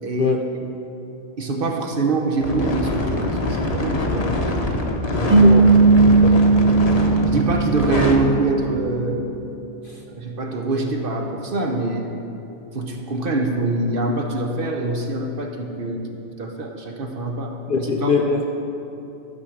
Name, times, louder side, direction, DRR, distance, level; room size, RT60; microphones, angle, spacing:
voice 1, 0.0-0.7 1.4-4.3 5.2-5.3 6.5-9.2 10.1-12.2 12.7-18.3, right 2 dB, 50° right, 3 dB, 0.9 m, -25 dB
sound 1, 2.4-8.2, left 1 dB, 35° left, 0.8 m, -24 dB
voice 2, 5.1-5.7 6.0-6.4 9.8-10.0 17.7-18.5, left 4 dB, 60° left, 3 dB, 0.5 m, -23 dB
sound 2, 5.3-8.6, right 3 dB, 35° right, 1.2 m, -16 dB
12.5 x 4.9 x 7.1 m, 2.9 s
omnidirectional pair, 1.4 m